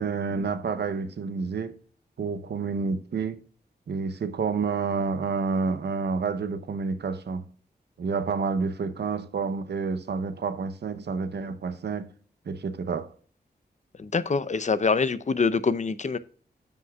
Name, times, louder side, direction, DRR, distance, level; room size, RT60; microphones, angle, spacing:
voice 1, 0.0-1.8 2.2-3.4 3.9-7.5 8.0-12.1 12.5-13.1, right 5 dB, 85° right, 0.8 m, -29 dB
voice 2, 14.0-16.2, left 4 dB, 45° left, 0.6 m, -25 dB
14.0 x 5.4 x 2.3 m
wide cardioid pair, 75°, 17 cm